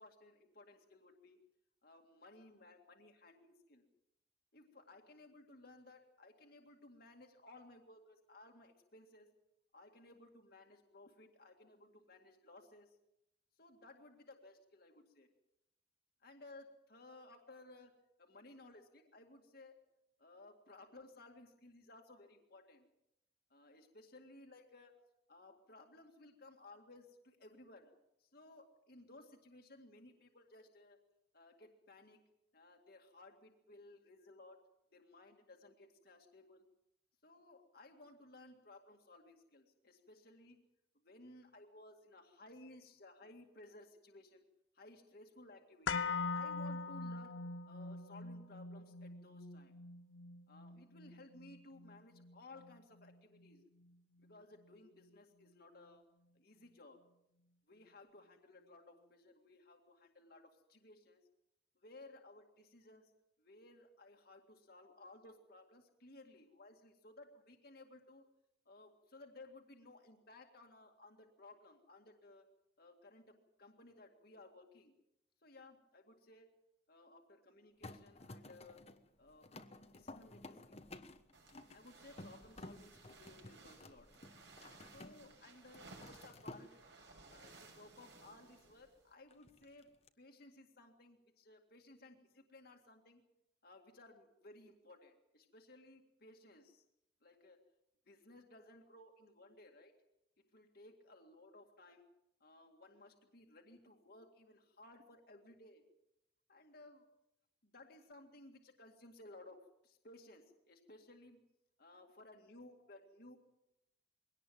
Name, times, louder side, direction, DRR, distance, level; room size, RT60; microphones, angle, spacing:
voice 1, 0.0-1.4 1.8-3.9 4.5-9.3 9.7-13.0 13.6-15.3 16.2-17.9 18.2-19.8 20.2-22.9 23.5-27.9 28.2-31.0 31.3-32.2 32.5-34.6 34.9-36.7 37.2-40.7 41.0-44.4 44.7-47.4 47.7-49.7 50.5-53.7 54.2-56.0 56.3-57.1 57.7-61.2 61.8-63.1 63.4-68.2 68.7-72.5 72.8-74.9 75.4-76.5 76.9-78.8 79.2-80.8 81.7-84.1 84.9-86.8 87.3-89.9 90.2-93.2 93.6-96.8 97.2-97.6 98.1-99.9 100.5-102.1 102.4-105.8 106.5-107.1 107.7-111.4 111.8-113.4, left 2 dB, 55° left, 3 dB, 2.1 m, -59 dB
sound 1, 45.9-53.9 54.2-54.3, left 4 dB, 90° left, 0.9 m, -43 dB
sound 2, 77.8-85.4 85.6-86.6 89.3-90.1, left 2 dB, 35° left, 1.2 m, -54 dB
sound 3, 81.3-89.1, right 3 dB, 65° right, 5.9 m, -60 dB
22.5 x 18.0 x 7.6 m, 0.83 s
head